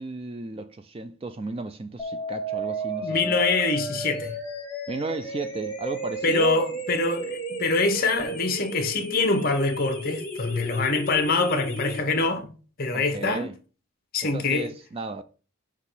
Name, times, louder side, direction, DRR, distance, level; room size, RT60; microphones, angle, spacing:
voice 1, 0.0-3.5 4.9-6.6 12.9-13.6 14.3-15.2, right 3 dB, 25° right, 0.3 m, -34 dB
sound 1, 2.0-12.0, right 2 dB, 10° left, 1.5 m, -33 dB
voice 2, 3.0-4.4 6.2-13.5 14.1-14.7, left 3 dB, 40° left, 1.0 m, -25 dB
6.2 x 3.0 x 5.6 m
head